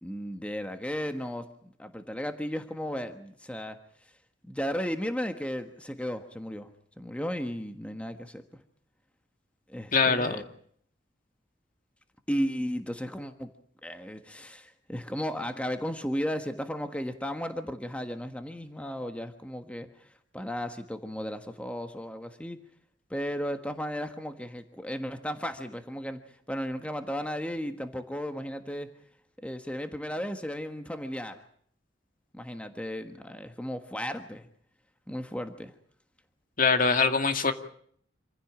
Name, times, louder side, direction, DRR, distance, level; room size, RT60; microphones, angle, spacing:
voice 1, 0.0-3.8 4.4-6.7 7.0-8.4 9.7-10.4 12.3-13.5 13.8-22.6 23.1-26.2 26.5-28.9 29.4-31.4 32.3-34.5 35.1-35.7, equal, 5° left, 7 dB, 1.4 m, -35 dB
voice 2, 9.9-10.4 36.6-37.5, left 4 dB, 50° left, 7 dB, 2.2 m, -23 dB
27.0 x 16.0 x 8.8 m, 0.62 s
head